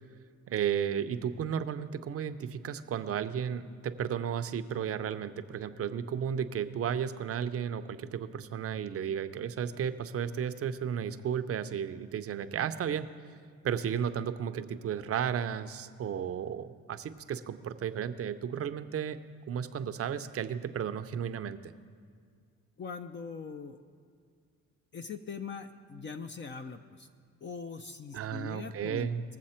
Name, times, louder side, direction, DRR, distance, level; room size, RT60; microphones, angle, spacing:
voice 1, 0.5-13.1 13.6-19.2 19.5-21.7 28.1-29.2, right 8 dB, 50° right, 11 dB, 0.6 m, -33 dB
voice 2, 22.8-23.8 24.9-27.1 27.4-29.1, left 5 dB, 40° left, 7 dB, 0.6 m, -41 dB
20.0 x 7.4 x 4.4 m, 2.1 s
cardioid pair, 90°, 30 cm